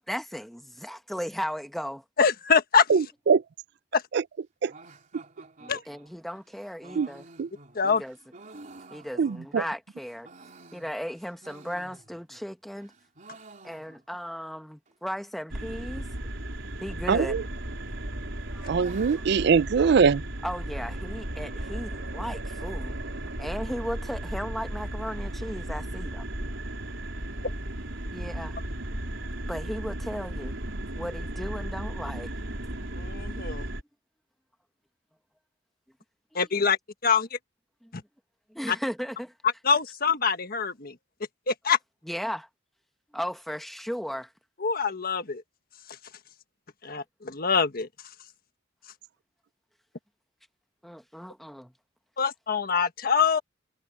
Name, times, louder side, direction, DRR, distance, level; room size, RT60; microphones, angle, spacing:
voice 1, 0.1-2.0 5.6-7.3 7.8-8.2 8.9-10.3 10.7-12.9 13.6-16.1 16.8-17.4 18.5-18.7 19.8-19.9 20.4-23.0 23.4-26.2 28.1-28.6 29.5-30.6 31.0-32.3 37.8-37.9 38.5-39.3 42.1-42.4 43.1-44.3 50.8-51.7, equal, ahead, 1.3 m, -36 dB
voice 2, 2.2-2.9 5.7-5.8 7.7-8.0 32.9-33.7 36.3-36.8 37.0-37.4 37.9-38.0 38.7-38.8 39.6-40.9 41.5-41.8 44.6-45.4 46.8-47.9 52.2-53.4, left 5 dB, 50° left, 1.5 m, -24 dB
voice 3, 2.9-3.4 4.1-4.2 7.0-7.1 7.4-7.5 9.2-9.6 17.1-17.4 18.7-20.2, right 5 dB, 60° right, 0.4 m, -22 dB
sound 1, 4.7-9.7 10.1-12.4 12.7-14.3 14.5-14.6 14.9-15.0 15.6-16.0 17.1-17.7 18.0-20.5, right 3 dB, 40° right, 3.7 m, -51 dB
sound 2, 15.5-33.8, right 1 dB, 85° right, 4.1 m, -35 dB
head